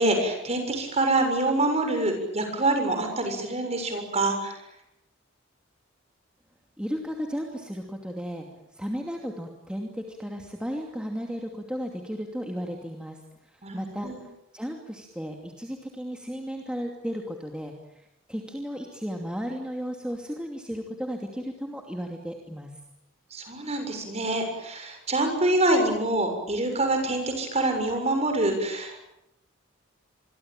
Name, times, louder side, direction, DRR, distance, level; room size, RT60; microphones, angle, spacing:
voice 1, 0.0-4.5 13.6-14.2 23.3-29.0, right 2 dB, 30° right, 5 dB, 7.0 m, -26 dB
voice 2, 6.8-8.4 8.7-14.1 14.5-22.7, equal, 5° right, 1 dB, 2.7 m, -34 dB
26.5 x 23.5 x 9.1 m, 0.84 s
head